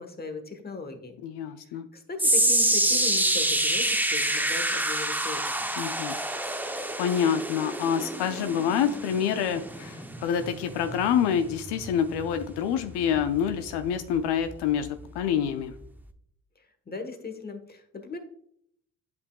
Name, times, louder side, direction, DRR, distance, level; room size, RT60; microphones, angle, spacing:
voice 1, 0.0-1.2 1.9-5.7 16.9-18.2, left 4 dB, 25° left, 7 dB, 1.2 m, -38 dB
voice 2, 1.2-1.9 5.8-6.2 7.0-15.7, left 8 dB, 75° left, 8 dB, 0.6 m, -27 dB
sound 1, 2.2-14.5 14.8-15.2 15.8-15.9, right 1 dB, 5° right, 0.6 m, -28 dB
8.1 x 5.3 x 2.3 m, 0.69 s
supercardioid pair, 55°, 41 cm